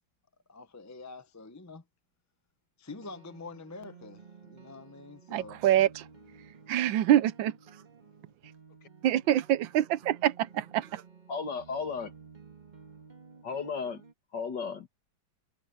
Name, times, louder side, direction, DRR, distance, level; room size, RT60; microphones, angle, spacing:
voice 1, 0.5-1.8 2.8-5.6, left 3 dB, 15° left, 0.5 m, -46 dB
sound 1, 2.9-14.1, right 5 dB, 25° right, 1.8 m, -54 dB
voice 2, 5.3-6.0 6.7-7.5 9.0-11.0, right 12 dB, 80° right, 1.4 m, -25 dB
voice 3, 11.3-12.1 13.4-14.0 14.3-14.9, left 5 dB, 65° left, 2.6 m, -34 dB
omnidirectional pair, 2.1 m